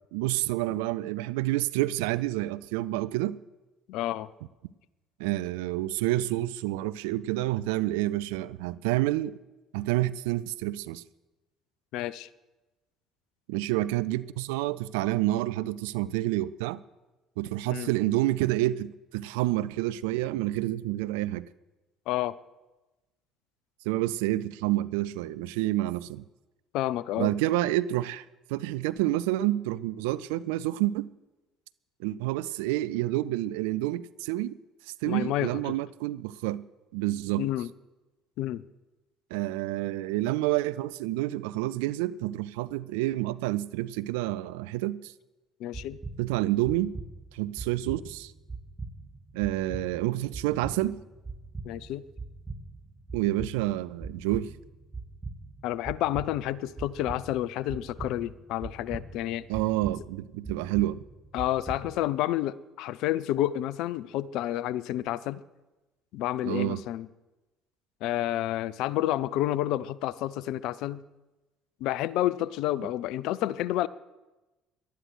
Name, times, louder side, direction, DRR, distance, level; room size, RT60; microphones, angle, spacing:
voice 1, 0.1-3.4 5.2-9.4 9.7-11.0 13.5-16.8 17.4-21.5 23.8-26.2 27.2-31.1 32.0-34.5 34.8-36.6 36.9-37.5 39.3-45.1 46.2-47.0 47.3-48.3 49.3-51.0 53.1-54.5 59.5-61.0 66.4-66.8, right 16 dB, 75° right, 0.5 m, -28 dB
voice 2, 3.9-4.3 11.9-12.3 17.7-17.9 22.1-22.4 26.7-27.3 35.1-35.5 37.4-37.7 38.4-38.6 45.6-46.0 51.6-52.0 55.6-59.5 61.3-65.4 66.1-67.1 68.0-71.0 71.8-73.9, left 14 dB, 65° left, 0.6 m, -30 dB
sound 1, 45.7-62.1, right 3 dB, 20° right, 2.1 m, -42 dB
18.5 x 12.0 x 6.3 m
hypercardioid pair, 55°, 0 cm